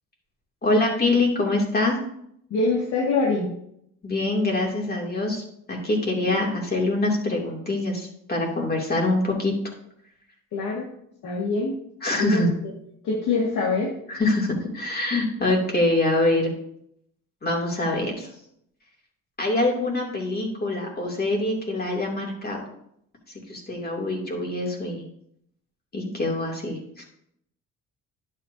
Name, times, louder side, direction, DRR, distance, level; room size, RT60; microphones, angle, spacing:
voice 1, 0.6-2.0 4.0-5.4 5.7-9.5 12.0-12.5 14.1-16.5 17.4-18.3 19.4-22.6 23.5-25.0 25.9-26.8, left 2 dB, 30° left, -1 dB, 2.8 m, -24 dB
voice 2, 2.5-3.5 6.2-6.3 10.5-10.9 11.2-11.8 12.1-12.5 13.0-14.0, left 3 dB, 75° left, -4 dB, 2.1 m, -24 dB
11.0 x 7.8 x 2.8 m, 0.73 s
cardioid pair, 90°, 30 cm